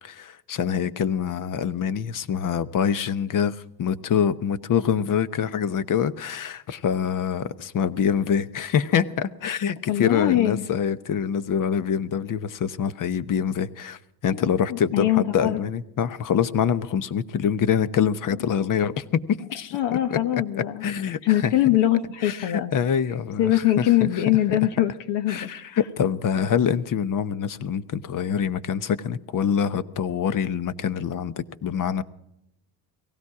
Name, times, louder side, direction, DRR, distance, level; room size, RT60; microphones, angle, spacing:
voice 1, 0.0-19.8 20.1-20.2 20.5-21.5 22.2-24.2 25.3-32.0, left 8 dB, 45° left, 1.0 m, -25 dB
voice 2, 9.9-10.6 14.3-14.4 14.7-15.6 19.7-20.9 21.2-22.7 23.4-25.8, left 13 dB, 70° left, 1.2 m, -22 dB
18.0 x 16.0 x 4.8 m
cardioid pair, 95°, 44 cm